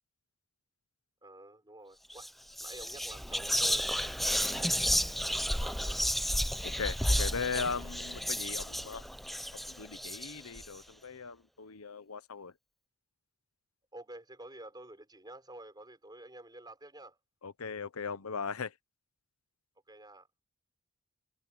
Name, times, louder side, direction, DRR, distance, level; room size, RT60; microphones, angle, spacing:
voice 1, 1.2-2.3 2.6-6.2 13.9-17.2 19.9-20.3, right 1 dB, 20° right, 4.9 m, -50 dB
Whispering, 2.1-2.3 2.6-10.7, equal, ahead, 0.5 m, -32 dB
voice 2, 6.6-9.0 9.5-12.5 17.4-18.8, left 5 dB, 85° left, 0.9 m, -38 dB
head